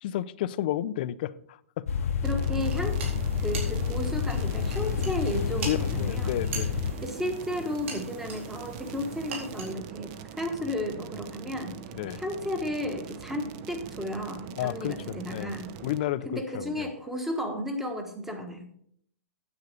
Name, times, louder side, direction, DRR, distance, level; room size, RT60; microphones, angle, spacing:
voice 1, 0.0-2.1 5.6-6.7 11.9-12.2 14.6-15.5 15.8-16.9, left 13 dB, 40° left, 16 dB, 0.5 m, -32 dB
sound 1, 1.9-7.0, left 7 dB, 80° left, 1.0 m, -29 dB
voice 2, 2.2-3.0 3.4-6.4 7.0-11.8 12.2-15.7 16.2-18.7, left 1 dB, 5° right, 6 dB, 1.2 m, -33 dB
sound 2, 2.2-16.0, right 8 dB, 30° right, 0.7 m, -43 dB
sound 3, 2.6-9.7, right 4 dB, 60° right, 4.3 m, -41 dB
9.6 x 8.2 x 5.1 m, 0.63 s
hypercardioid pair, 165°, 8 cm